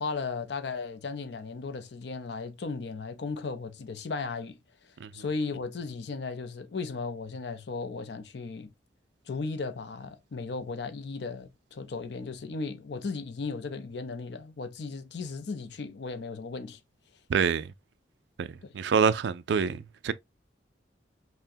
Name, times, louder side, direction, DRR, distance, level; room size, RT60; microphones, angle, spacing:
voice 1, 0.0-4.6 5.1-8.7 9.3-16.8 18.6-18.7, left 4 dB, 65° left, 0.5 m, -36 dB
voice 2, 17.3-17.7 18.4-18.5 18.7-20.1, right 6 dB, 70° right, 0.4 m, -26 dB
5.7 x 2.1 x 2.6 m
head